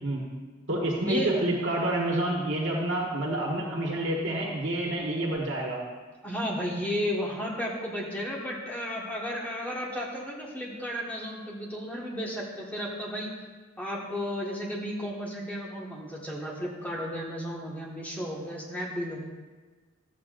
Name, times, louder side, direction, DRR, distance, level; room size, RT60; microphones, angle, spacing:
voice 1, 0.7-5.8, right 1 dB, 65° right, -3 dB, 1.4 m, -28 dB
voice 2, 6.2-13.3 13.8-19.2, equal, 10° left, -4 dB, 1.6 m, -33 dB
12.5 x 8.2 x 2.5 m, 1.3 s
head